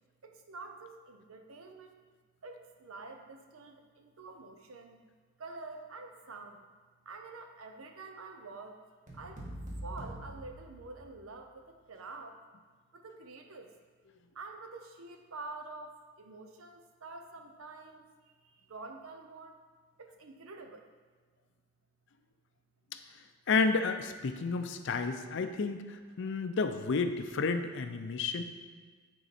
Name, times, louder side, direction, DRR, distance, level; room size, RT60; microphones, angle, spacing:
voice 1, 0.2-2.1 2.4-5.0 5.4-6.6 7.0-8.8 9.1-9.4 9.8-12.4 12.9-13.7 14.3-19.6 20.0-20.9, right 3 dB, 75° right, 5 dB, 0.7 m, -47 dB
sound 1, 9.1-11.4, right 1 dB, 35° right, 1.4 m, -44 dB
voice 2, 23.5-28.4, left 4 dB, 60° left, 8 dB, 0.5 m, -31 dB
9.9 x 3.8 x 4.2 m, 1.5 s
head